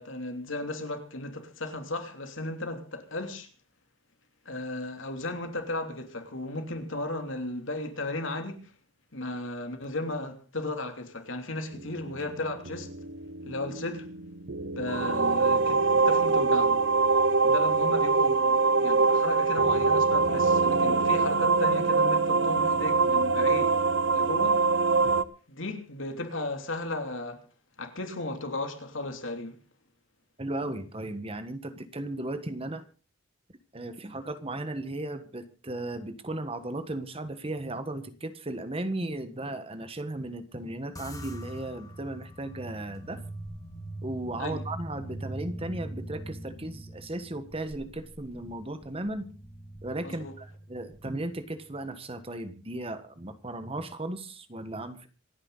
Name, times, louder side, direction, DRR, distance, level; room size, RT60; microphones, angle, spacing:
voice 1, 0.0-3.5 4.4-8.7 9.1-12.9 13.4-14.1 14.7-16.8 17.4-23.8 24.1-24.6 25.5-27.4 27.8-29.6 44.4-44.6 50.0-50.3, left 2 dB, 75° left, 3.0 m, -35 dB
sound 1, 11.7-25.2, right 4 dB, 65° right, 0.9 m, -24 dB
voice 2, 30.4-32.8 33.7-43.2 44.0-49.3 49.8-55.1, right 1 dB, 30° right, 1.4 m, -36 dB
sound 2, 41.0-51.6, right 1 dB, 20° left, 2.7 m, -42 dB
26.5 x 10.0 x 4.0 m
head